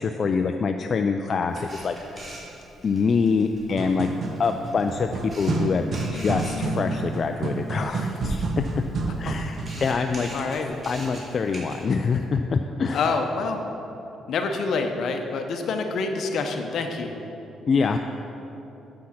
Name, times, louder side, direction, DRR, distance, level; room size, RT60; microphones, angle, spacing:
voice 1, 0.0-2.3 2.8-4.1 4.4-8.8 9.2-10.3 10.9-13.1 17.7-18.0, left 5 dB, 45° left, 5 dB, 0.3 m, -25 dB
Camera, 1.5-11.9, right 1 dB, 30° right, 2.1 m, -39 dB
sound 1, 3.6-9.9, right 3 dB, 55° right, 0.8 m, -30 dB
voice 2, 10.3-10.8 12.9-13.6 14.3-17.1, left 4 dB, 70° left, 5 dB, 0.8 m, -27 dB
7.4 x 6.2 x 5.9 m, 3.0 s
cardioid pair, 90°, 0 cm